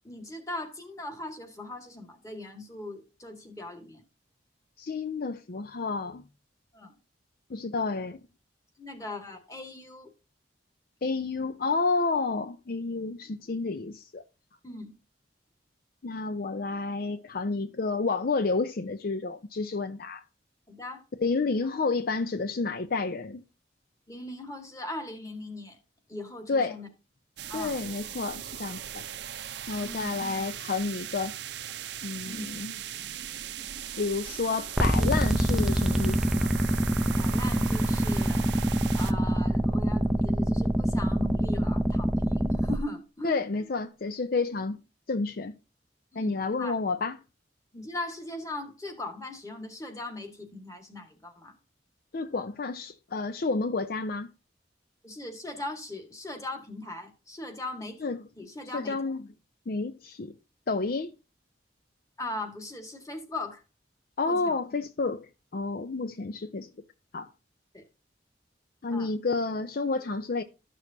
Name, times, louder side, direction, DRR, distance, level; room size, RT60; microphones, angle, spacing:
voice 1, 0.0-4.0 6.7-6.9 8.8-10.1 14.6-15.0 20.7-21.0 24.1-25.8 26.1-26.9 27.5-27.8 29.8-30.2 32.2-32.6 37.2-38.5 39.0-43.4 46.1-46.8 47.7-51.6 55.0-58.0 58.4-59.0 62.2-63.6 64.2-64.6 67.7-67.8 68.9-69.1, left 2 dB, 20° left, 1.7 m, -39 dB
voice 2, 4.8-6.2 7.5-8.2 11.0-14.2 16.0-20.2 21.2-23.4 26.5-26.8 27.5-29.1 29.7-31.3 32.0-32.7 34.0-36.5 43.2-44.8 45.1-45.5 46.2-47.2 52.1-54.3 58.0-58.2 58.7-59.2 59.7-60.3 60.7-61.1 64.2-65.3 65.5-66.7 67.1-67.3 68.8-70.4, left 3 dB, 55° left, 0.5 m, -30 dB
sound 1, 27.4-39.1, right 10 dB, 65° right, 0.7 m, -39 dB
sound 2, 34.8-42.8, right 1 dB, 5° right, 0.5 m, -25 dB
13.0 x 6.3 x 2.7 m
head